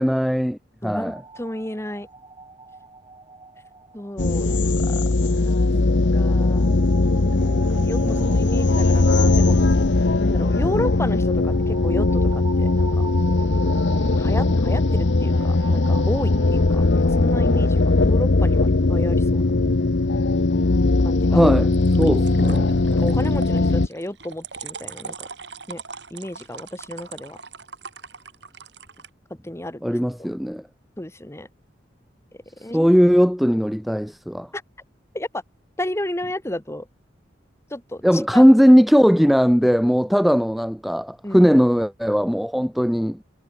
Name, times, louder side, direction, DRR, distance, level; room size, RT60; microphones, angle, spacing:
voice 1, 0.0-1.2 8.0-8.4 21.3-21.7 22.0-22.8 29.8-30.6 32.7-34.5 38.0-43.2, equal, ahead, 0.7 m, -18 dB
voice 2, 0.8-2.1 3.9-5.7 6.1-6.8 7.3-9.7 10.2-13.1 14.1-19.5 21.0-21.4 22.8-25.3 25.7-25.8 26.1-27.4 29.4-30.3 31.0-31.5 32.6-32.9 34.5-34.6 35.1-35.4 35.8-36.9 37.7-38.4 41.2-41.5, left 1 dB, 15° left, 1.5 m, -32 dB
sound 1, 0.8-17.6, right 4 dB, 25° right, 2.7 m, -42 dB
sound 2, 4.2-23.9, left 2 dB, 85° left, 0.9 m, -19 dB
sound 3, 11.5-12.1 21.7-29.1, right 5 dB, 75° right, 6.5 m, -41 dB
head